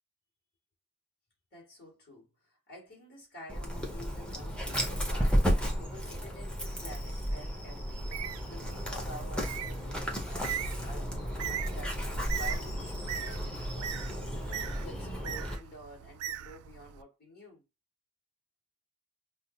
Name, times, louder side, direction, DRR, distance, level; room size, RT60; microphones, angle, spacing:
voice 1, 1.5-10.5 10.8-14.4 14.8-17.6, equal, 45° left, 2.1 m, -50 dB
Dog, 3.5-15.6, equal, 5° left, 0.8 m, -33 dB
Bird, 7.9-17.0, right 10 dB, 70° right, 0.3 m, -41 dB
5.4 x 2.0 x 2.7 m
head